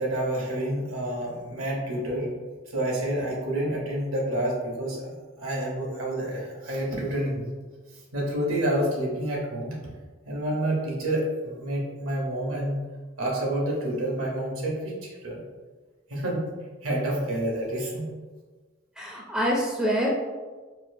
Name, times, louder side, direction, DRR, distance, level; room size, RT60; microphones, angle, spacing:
voice 1, 0.0-2.3 2.7-7.4 8.1-9.7 10.3-12.8 13.2-15.4 16.1-16.5 16.8-18.0, right 1 dB, 85° right, -2 dB, 0.9 m, -28 dB
voice 2, 19.0-20.1, equal, 5° right, -4 dB, 0.4 m, -26 dB
4.1 x 2.3 x 2.6 m, 1.3 s
head